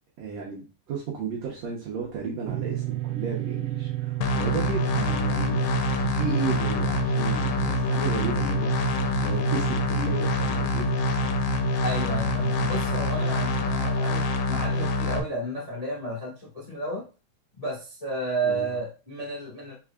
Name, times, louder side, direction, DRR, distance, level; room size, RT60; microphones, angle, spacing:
voice 1, 0.2-8.7 9.2-10.9 18.4-18.7, right 6 dB, 65° right, -3 dB, 1.8 m, -33 dB
sound 1, 2.5-13.9, right 17 dB, 85° right, 2.2 m, -32 dB
sound 2, 4.2-15.2, left 3 dB, 85° left, 2.2 m, -26 dB
voice 2, 11.8-17.0 17.5-19.7, right 2 dB, 20° left, -5 dB, 0.9 m, -32 dB
4.7 x 4.6 x 2.4 m, 0.32 s
omnidirectional pair, 3.8 m